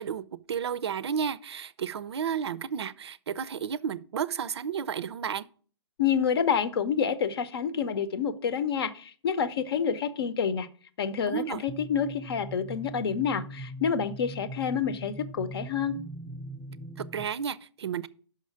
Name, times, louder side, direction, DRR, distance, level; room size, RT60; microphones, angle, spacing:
voice 1, 0.0-5.5 11.3-11.6 17.0-18.1, right 7 dB, 65° right, 0.5 m, -32 dB
voice 2, 6.0-10.7 11.0-15.9, left 7 dB, 55° left, 0.7 m, -28 dB
sound 1, 11.7-17.3, right 1 dB, 5° right, 0.5 m, -41 dB
5.9 x 5.1 x 5.7 m
figure-of-eight pair, 125°, 15 cm